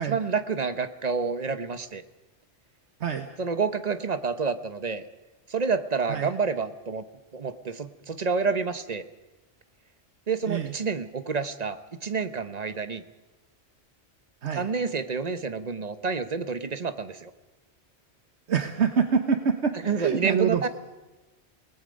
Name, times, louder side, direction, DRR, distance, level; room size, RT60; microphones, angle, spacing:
voice 1, 0.0-2.0 3.4-5.1 5.5-7.0 7.3-9.0 10.3-13.0 14.5-17.3 19.8-20.7, right 5 dB, 40° right, 10 dB, 1.0 m, -29 dB
voice 2, 10.4-10.7 14.4-14.7 18.5-20.7, right 6 dB, 75° right, 6 dB, 1.4 m, -26 dB
29.0 x 19.0 x 5.3 m, 1.1 s
omnidirectional pair, 1.2 m